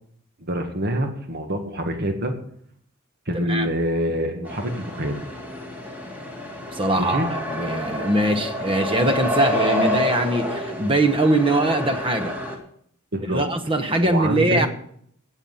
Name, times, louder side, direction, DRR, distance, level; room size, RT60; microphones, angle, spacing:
voice 1, 0.4-2.3 3.3-5.2 7.0-7.3 13.1-13.4 14.0-14.6, equal, 50° right, 5 dB, 1.9 m, -25 dB
voice 2, 3.3-3.7 6.7-12.4 13.3-14.7, right 1 dB, 25° right, 8 dB, 1.1 m, -22 dB
sound 1, 4.5-12.6, left 1 dB, 10° right, 2.0 m, -28 dB
16.0 x 7.3 x 5.6 m, 0.65 s
head